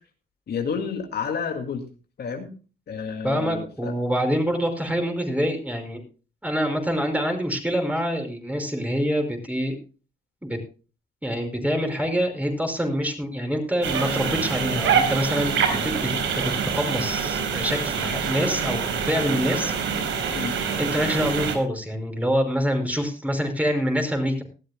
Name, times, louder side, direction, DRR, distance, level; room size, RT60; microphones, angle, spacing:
voice 1, 0.5-1.8 2.2-2.5 2.9-3.9 20.3-20.6, left 6 dB, 55° left, 4 dB, 2.2 m, -30 dB
voice 2, 3.2-6.0 6.4-9.8 10.4-10.6 11.2-19.7 20.8-24.4, equal, 5° right, 4 dB, 5.2 m, -26 dB
sound 1, 13.8-21.5, right 6 dB, 80° right, 4.1 m, -25 dB
19.5 x 13.5 x 2.2 m, 0.35 s
cardioid pair, 90°, 20 cm